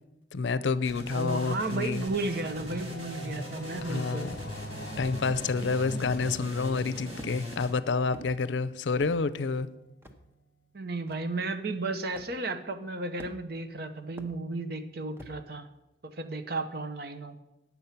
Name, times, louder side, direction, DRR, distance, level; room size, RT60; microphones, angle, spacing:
voice 1, 0.3-2.0 3.8-4.4 5.0-9.7, left 4 dB, 90° left, 15 dB, 0.5 m, -29 dB
sound 1, 0.8-7.7, left 1 dB, 35° right, 2.0 m, -40 dB
voice 2, 1.1-4.3 10.7-15.7 16.0-17.4, right 2 dB, 60° right, 9 dB, 0.9 m, -34 dB
Singing / Musical instrument, 1.3-10.4, equal, 55° left, 1.0 m, -45 dB
sound 2, 6.2-6.6 7.2-7.4 8.1-8.3 9.0-9.2 10.0-10.2 11.1-11.2 12.1-12.3 13.2-13.6 14.2-14.3 15.2-15.4, equal, 15° right, 0.8 m, -46 dB
9.6 x 7.1 x 5.7 m, 0.96 s
head